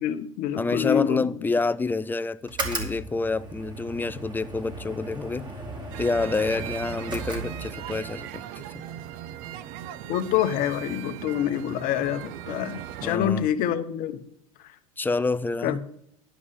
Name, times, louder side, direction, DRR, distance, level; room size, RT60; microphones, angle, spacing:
voice 1, 0.0-1.2 10.1-14.2 15.6-16.0, left 10 dB, 50° left, 1.0 m, -26 dB
voice 2, 0.6-5.5 6.0-8.4 13.0-13.5 15.0-15.9, left 3 dB, 10° left, 0.4 m, -28 dB
sound 1, 2.4-8.1, right 2 dB, 25° right, 2.5 m, -36 dB
sound 2, 5.9-13.1, right 11 dB, 55° right, 0.6 m, -38 dB
11.5 x 5.4 x 6.5 m
hypercardioid pair, 85°, 18 cm